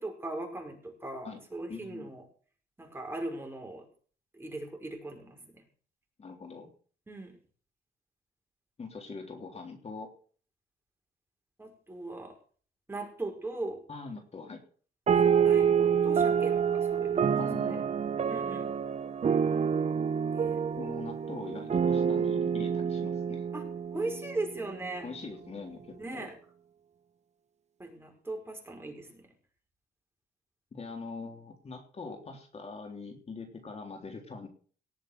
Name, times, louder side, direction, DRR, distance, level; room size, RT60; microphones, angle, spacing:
voice 1, 0.0-2.2 2.8-3.8 4.3-5.6 7.1-7.4 11.6-12.3 12.9-13.8 15.1-17.4 17.6-17.8 18.3-18.7 20.3-20.6 23.5-23.6 23.9-25.1 26.0-26.3 27.8-29.3, right 2 dB, 15° right, 2 dB, 5.5 m, -39 dB
voice 2, 1.7-2.1 6.2-6.7 8.8-10.1 13.9-14.6 17.3-17.9 20.8-23.4 25.0-26.3 30.7-34.5, left 4 dB, 40° left, 4 dB, 3.5 m, -43 dB
sound 1, 15.1-24.8, right 7 dB, 45° right, 1.0 m, -27 dB
18.5 x 7.4 x 6.6 m, 0.43 s
cardioid pair, 105°, 17 cm